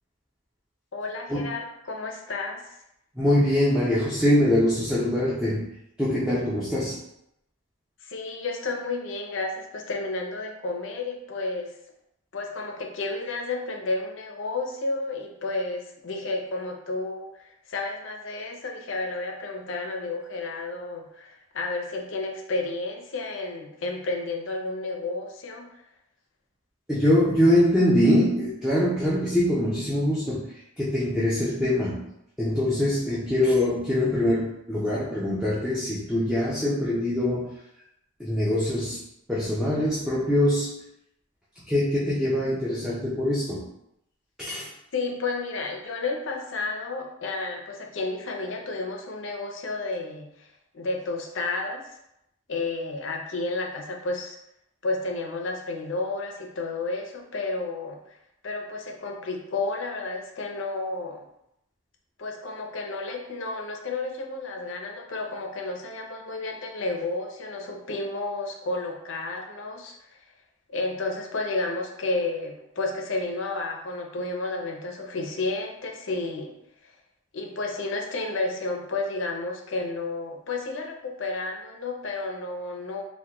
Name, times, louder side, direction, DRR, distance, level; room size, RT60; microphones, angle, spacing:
voice 1, 0.9-2.8 8.0-11.7 12.3-25.8 44.9-50.5 50.7-52.0 52.5-54.4 54.8-58.2 58.4-61.2 62.2-70.2 70.7-76.5 77.3-83.0, left 3 dB, 60° left, 1 dB, 0.5 m, -31 dB
voice 2, 3.2-5.6 6.0-7.0 26.9-30.5 30.8-32.1 32.4-37.5 38.2-39.0 39.3-40.7 41.7-43.6 44.4-44.7, left 1 dB, 5° right, -9 dB, 0.4 m, -23 dB
3.4 x 2.2 x 2.9 m, 0.80 s
head